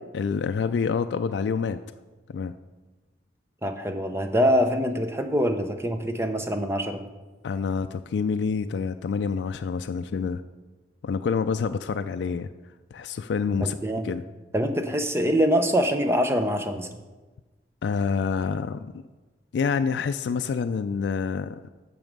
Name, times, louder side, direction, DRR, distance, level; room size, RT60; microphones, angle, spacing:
voice 1, 0.1-1.8 2.3-2.5 7.4-10.4 11.0-12.5 12.9-13.8 14.0-14.2 17.8-18.9 19.5-21.7, left 5 dB, 80° left, 8 dB, 0.3 m, -27 dB
voice 2, 3.6-7.0 13.6-14.1 14.5-16.9, equal, 15° right, 6 dB, 0.6 m, -24 dB
9.1 x 6.3 x 5.2 m, 1.2 s
head